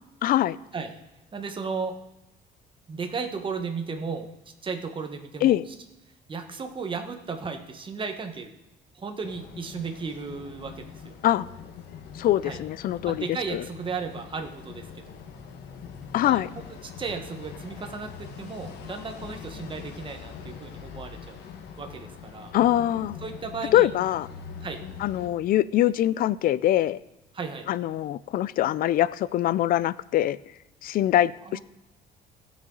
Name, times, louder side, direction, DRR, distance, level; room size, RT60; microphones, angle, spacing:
voice 1, 0.2-0.6 5.4-5.6 11.2-11.5 12.2-13.2 13.5-13.6 16.1-16.5 22.5-23.1 23.7-24.3 25.0-27.0 27.7-30.4 30.8-31.6, left 13 dB, 60° left, 19 dB, 0.4 m, -23 dB
voice 2, 1.3-1.9 2.9-4.3 4.6-5.7 6.3-8.5 8.9-11.1 12.4-12.6 13.1-15.2 16.2-16.6 17.0-21.5 21.8-22.5 23.2-23.9 24.6-24.8 27.3-27.7 31.4-31.6, right 5 dB, 30° right, 5 dB, 1.3 m, -35 dB
sound 1, 9.2-25.3, left 7 dB, 80° left, 1.6 m, -43 dB
17.0 x 6.4 x 3.9 m, 0.94 s
cardioid pair, 110°, 17 cm